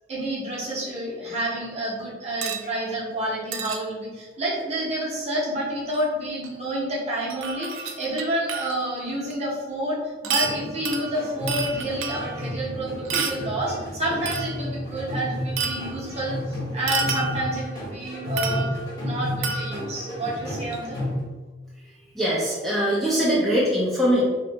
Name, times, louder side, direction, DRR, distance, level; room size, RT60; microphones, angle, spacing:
voice 1, 0.1-18.7 19.0-21.0, right 1 dB, 30° right, -5 dB, 0.8 m, -29 dB
sound 1, 2.4-2.7 3.5-3.8 5.9-6.0 6.4-6.5 7.3-8.8 9.3-9.4 10.2-12.5 13.1-13.5 14.3-14.6 15.6-16.0 16.9-17.7 18.4-19.0 19.4-20.0 20.7-20.8, right 5 dB, 85° right, 0.4 m, -30 dB
sound 2, 10.4-21.2, left 1 dB, 20° left, 0.8 m, -32 dB
voice 2, 22.1-24.2, equal, ahead, -8 dB, 0.5 m, -22 dB
2.8 x 2.4 x 3.3 m, 1.3 s
head